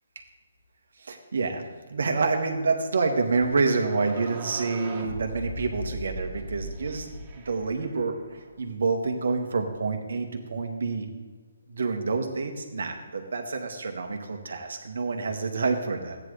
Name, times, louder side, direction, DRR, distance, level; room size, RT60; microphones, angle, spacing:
voice 1, 1.0-1.6 1.9-11.1 11.7-16.2, right 4 dB, 70° right, 4 dB, 1.8 m, -28 dB
sound 1, 3.7-8.5, right 1 dB, 25° right, 2.1 m, -39 dB
14.5 x 9.7 x 3.4 m, 1.5 s
hypercardioid pair, 150°, 0 cm